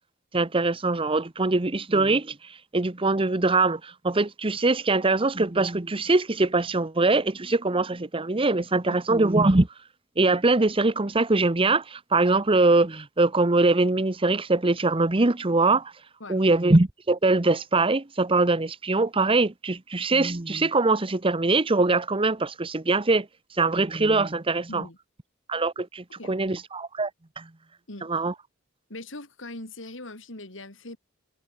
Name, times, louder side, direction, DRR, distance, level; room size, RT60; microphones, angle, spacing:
voice 1, 0.3-9.7 10.2-15.9 16.3-23.3 23.6-24.8 25.5-27.1 27.4-27.5 28.1-28.3, right 3 dB, 25° right, 1.0 m, -23 dB
voice 2, 28.9-31.0, left 2 dB, 70° left, 4.4 m, -40 dB
head